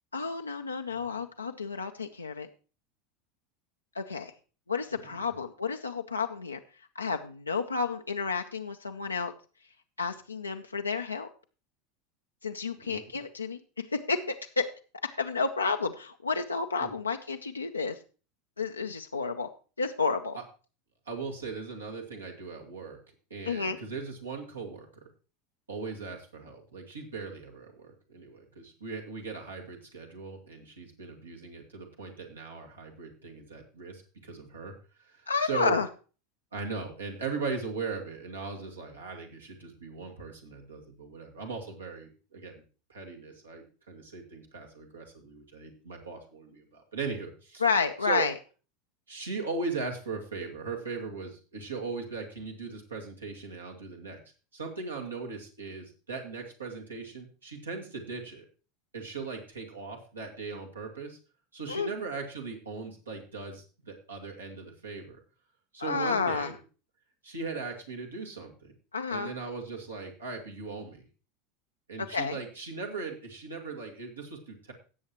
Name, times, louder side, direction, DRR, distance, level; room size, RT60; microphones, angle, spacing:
voice 1, 0.1-2.5 3.9-4.3 4.7-6.6 7.0-9.3 10.0-11.3 12.4-13.6 13.9-14.7 15.2-18.0 18.6-19.5 19.8-20.4 23.4-23.8 35.3-35.9 47.6-48.3 61.7-61.9 65.8-66.5 68.9-69.3 72.0-72.4, left 4 dB, 90° left, 4 dB, 0.5 m, -30 dB
voice 2, 12.8-13.1 16.8-16.9 21.1-23.0 23.3-25.0 25.7-34.7 35.1-35.8 36.5-42.6 42.9-47.6 48.0-48.2 49.1-54.2 54.5-58.5 58.9-61.2 61.5-65.2 65.7-66.6 67.2-68.7 69.1-71.1 71.9-74.7, right 4 dB, 85° right, 1 dB, 2.1 m, -39 dB
17.0 x 7.2 x 3.0 m, 0.36 s
figure-of-eight pair, 80°, 0 cm